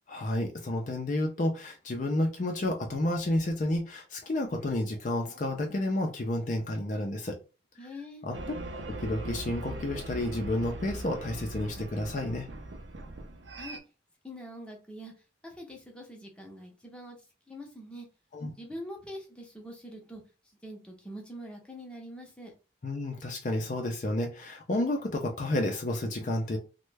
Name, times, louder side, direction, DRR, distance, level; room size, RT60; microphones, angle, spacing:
voice 1, 0.1-7.4 8.2-8.4 8.9-12.5 18.3-18.5 22.8-26.6, left 1 dB, 45° left, 3 dB, 0.4 m, -31 dB
voice 2, 7.8-8.3 13.5-13.8 14.2-15.1 15.4-17.2 17.5-18.1 18.6-20.2 20.6-22.5, equal, 5° left, 0 dB, 0.7 m, -44 dB
sound 1, 8.3-13.8, right 1 dB, 80° right, 0.5 m, -40 dB
3.1 x 2.1 x 3.2 m, 0.32 s
head